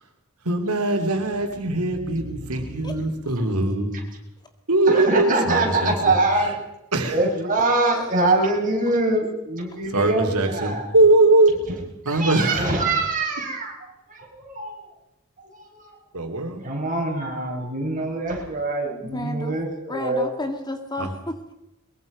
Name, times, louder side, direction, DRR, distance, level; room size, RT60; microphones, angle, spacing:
voice 1, 0.4-4.0 4.7-6.1 6.4-6.5 6.9-7.2 9.9-11.5 12.0-12.8 16.1-16.6 21.0-21.1, right 2 dB, 85° right, 4 dB, 3.4 m, -21 dB
voice 2, 2.2-3.0 4.9-6.5 7.0-10.8 11.7-11.8 12.0-13.8 14.1-14.8 15.4-16.0 16.6-20.3, right 2 dB, 35° right, 0 dB, 5.8 m, -24 dB
voice 3, 19.0-19.6 19.9-21.5, left 1 dB, 20° left, 5 dB, 2.0 m, -32 dB
23.0 x 22.5 x 5.4 m, 0.93 s
head